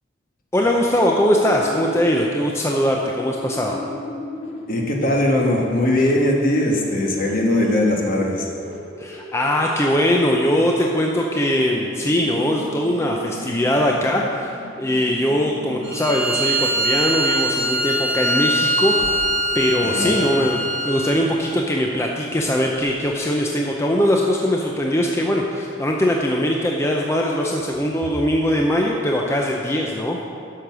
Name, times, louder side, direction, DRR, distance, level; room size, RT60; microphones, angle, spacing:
voice 1, 0.5-3.8 9.0-20.6 20.8-30.3, equal, 15° left, 0 dB, 0.5 m, -21 dB
sound 1, 1.4-16.2, left 1 dB, 85° left, 1.4 m, -37 dB
voice 2, 4.7-8.5 19.8-20.2, left 1 dB, 45° left, -1 dB, 1.4 m, -20 dB
Bowed string instrument, 15.8-21.2, right 1 dB, 70° right, 1.7 m, -22 dB
sound 2, 19.0-19.8 22.7-23.0, equal, 5° right, 0.9 m, -39 dB
10.0 x 6.5 x 6.1 m, 2.5 s
head